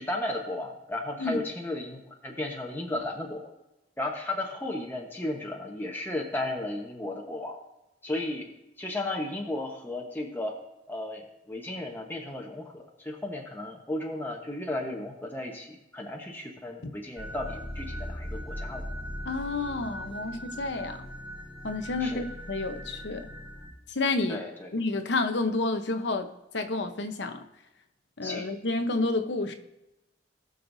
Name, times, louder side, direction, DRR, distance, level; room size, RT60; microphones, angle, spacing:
voice 1, 0.0-3.5 4.0-7.6 8.0-8.5 8.8-10.5 10.9-18.9 22.0-22.2 24.3-24.7 28.2-28.4, left 1 dB, 10° left, -1 dB, 1.1 m, -34 dB
sound 1, 17.2-23.7, equal, 20° right, 3.1 m, -39 dB
voice 2, 19.3-21.1 21.6-23.3 23.9-24.4 24.7-26.3 26.5-27.4 28.2-29.5, left 3 dB, 70° left, 7 dB, 0.9 m, -30 dB
18.5 x 6.6 x 2.7 m, 0.95 s
head